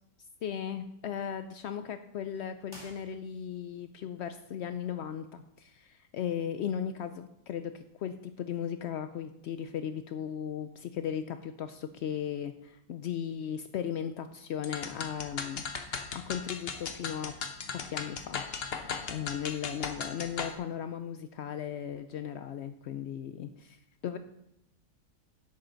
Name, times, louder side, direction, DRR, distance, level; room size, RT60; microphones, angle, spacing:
voice 1, 0.4-15.6 16.1-17.3 17.8-23.8 24.0-24.2, left 9 dB, 85° left, 10 dB, 0.6 m, -37 dB
sound 1, 2.6-3.7, left 1 dB, 25° left, 2.8 m, -52 dB
sound 2, 14.6-20.6, left 5 dB, 45° left, 0.9 m, -37 dB
10.5 x 8.4 x 3.9 m, 0.82 s
omnidirectional pair, 1.7 m